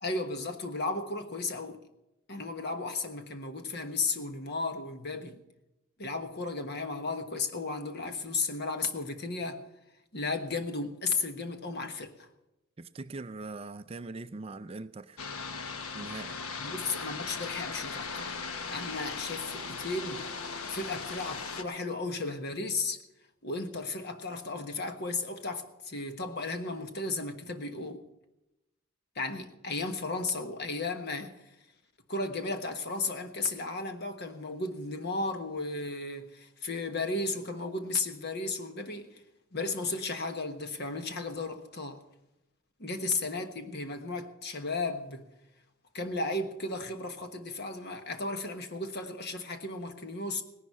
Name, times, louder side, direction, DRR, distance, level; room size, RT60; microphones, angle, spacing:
voice 1, 0.0-1.8 2.3-5.4 6.0-9.6 10.1-12.3 16.6-18.4 18.7-20.3 20.7-23.0 23.4-28.0 29.1-31.4 32.1-39.2 39.5-42.0 42.8-45.3 45.9-50.4, left 3 dB, 50° left, 1.3 m, -34 dB
voice 2, 12.8-15.2 15.9-16.4, right 3 dB, 25° right, 0.4 m, -41 dB
sound 1, 15.2-21.6, left 5 dB, 90° left, 1.1 m, -38 dB
18.0 x 11.0 x 5.5 m
head